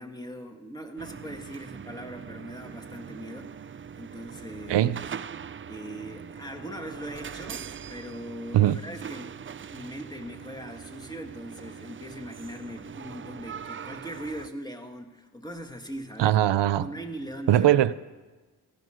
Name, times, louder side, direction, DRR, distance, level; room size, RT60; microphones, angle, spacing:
voice 1, 0.0-3.5 3.9-4.9 5.6-9.4 9.7-16.4 16.7-17.8, equal, 10° left, 1.7 m, -40 dB
sound 1, 1.0-14.5, right 7 dB, 30° right, 0.4 m, -42 dB
voice 2, 16.2-16.9 17.5-17.9, right 13 dB, 85° right, 0.6 m, -20 dB
16.0 x 13.5 x 6.3 m
wide cardioid pair, 85°, 41 cm